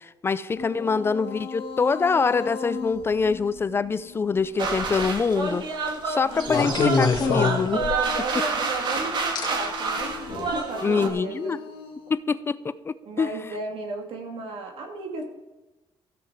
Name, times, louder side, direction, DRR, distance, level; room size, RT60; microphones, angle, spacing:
voice 1, 0.0-7.8 10.8-11.6 12.1-13.3, left 5 dB, 25° left, 15 dB, 0.4 m, -25 dB
sound 1, 0.6-5.0 6.2-12.1, left 5 dB, 85° left, 2.7 m, -40 dB
voice 2, 0.7-1.1 7.7-11.6 13.0-15.2, right 3 dB, 75° right, 3 dB, 2.5 m, -34 dB
sound 2, 4.6-5.1 6.5-8.2 9.4-9.5 10.3-10.5, left 5 dB, 50° left, 1.8 m, -24 dB
sound 3, 4.6-11.1, right 3 dB, 55° right, 1.8 m, -28 dB
14.5 x 7.7 x 4.7 m, 1.0 s
cardioid pair, 145°, 9 cm